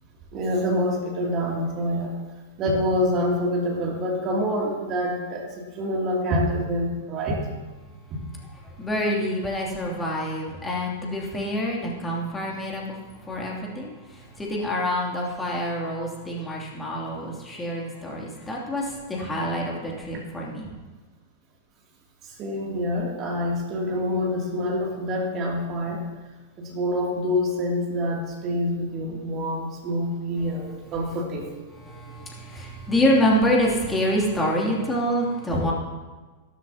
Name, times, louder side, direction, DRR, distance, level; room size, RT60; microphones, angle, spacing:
voice 1, 0.3-2.1 2.6-7.4 8.1-8.2 22.2-26.0 26.6-31.5, equal, 35° right, -1 dB, 2.7 m, -26 dB
voice 2, 8.6-20.7 31.7-35.7, equal, 10° left, -3 dB, 2.8 m, -26 dB
15.0 x 13.0 x 2.9 m, 1.3 s
figure-of-eight pair, 95°, 0 cm